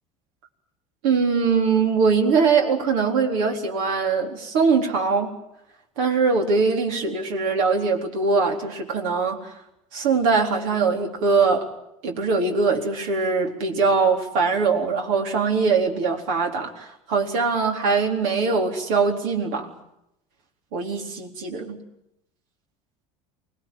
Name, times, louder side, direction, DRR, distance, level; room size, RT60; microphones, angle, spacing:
voice 1, 1.0-5.3 6.0-9.5 9.9-11.7 12.0-19.7 20.7-21.8, right 4 dB, 75° right, 3 dB, 4.1 m, -22 dB
25.0 x 19.5 x 9.3 m, 0.82 s
hypercardioid pair, 85°, 18 cm